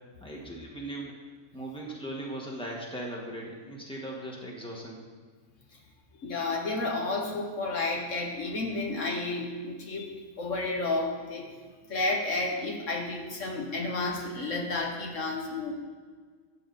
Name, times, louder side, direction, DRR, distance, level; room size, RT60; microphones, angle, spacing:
voice 1, 0.2-1.1 1.5-5.1, right 1 dB, 5° left, -2 dB, 1.7 m, -38 dB
voice 2, 6.2-11.5 11.9-15.7, left 2 dB, 70° left, 0 dB, 1.7 m, -31 dB
12.5 x 8.4 x 4.3 m, 1.5 s
omnidirectional pair, 1.3 m